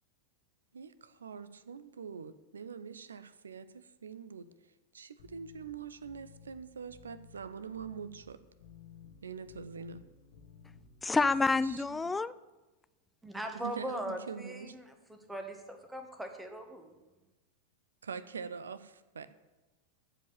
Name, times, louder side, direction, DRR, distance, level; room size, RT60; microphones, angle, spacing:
voice 1, 0.7-4.5 4.9-8.4 9.2-10.0 11.6-12.1 13.6-14.7 18.0-19.3, right 6 dB, 70° right, 14 dB, 0.7 m, -44 dB
sound 1, 5.2-12.0, left 6 dB, 55° left, 1.5 m, -56 dB
voice 2, 11.0-12.3, left 3 dB, 10° left, 16 dB, 0.4 m, -28 dB
voice 3, 13.2-16.9, right 1 dB, 5° right, 5 dB, 1.7 m, -40 dB
14.5 x 5.1 x 8.9 m, 1.1 s
figure-of-eight pair, 90°, 0 cm